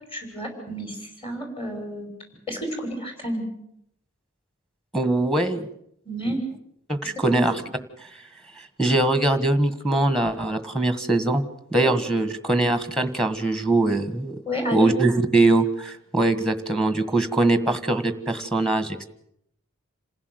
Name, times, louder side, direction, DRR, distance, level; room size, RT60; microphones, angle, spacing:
voice 1, 0.1-2.1 2.5-3.5 6.0-6.4 7.2-7.4 14.5-14.9, equal, 25° left, 4 dB, 6.1 m, -30 dB
voice 2, 4.9-5.7 6.3-6.4 6.9-7.6 8.8-11.4 11.7-14.4 14.7-19.0, right 2 dB, 5° left, 10 dB, 1.6 m, -22 dB
27.5 x 16.0 x 8.1 m, 0.73 s
head